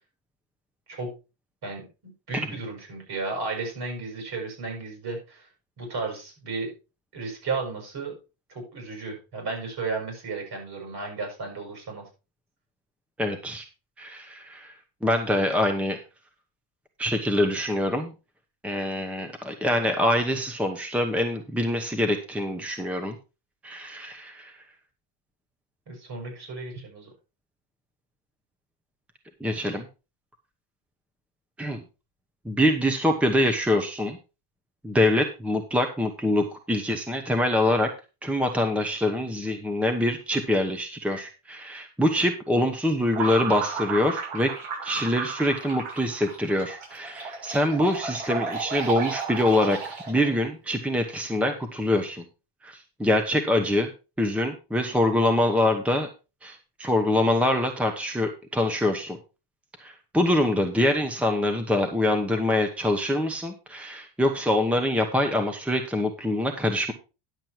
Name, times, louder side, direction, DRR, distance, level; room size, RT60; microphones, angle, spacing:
voice 1, 1.6-5.5 5.8-6.7 7.1-8.1 8.5-12.1 25.9-27.1, right 3 dB, 50° right, 3 dB, 6.6 m, -34 dB
voice 2, 13.2-13.6 14.0-14.7 15.0-16.0 17.0-18.1 18.6-23.2 23.6-24.6 29.4-29.9 31.6-31.8 32.4-34.2 34.8-37.9 38.2-44.5 44.8-52.2 52.6-53.9 54.2-56.1 56.4-59.2 59.8-66.9, left 1 dB, 5° right, 6 dB, 1.0 m, -25 dB
sound 1, 43.1-50.3, right 4 dB, 75° right, 7.0 m, -33 dB
10.5 x 7.6 x 4.5 m, 0.30 s
cardioid pair, 140°, 50 cm